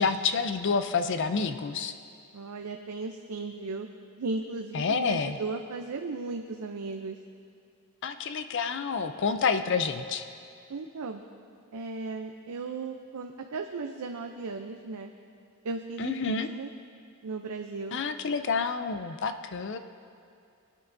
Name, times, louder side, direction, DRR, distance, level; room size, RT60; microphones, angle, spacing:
voice 1, 0.0-1.9 4.7-5.4 8.0-10.2 16.0-16.5 17.9-19.8, left 5 dB, 55° left, 9 dB, 0.5 m, -28 dB
voice 2, 2.3-3.9 4.2-7.2 10.7-11.2 11.7-15.1 15.6-16.7 17.2-18.0, right 3 dB, 85° right, 3 dB, 0.6 m, -36 dB
20.5 x 9.4 x 2.6 m, 2.5 s
head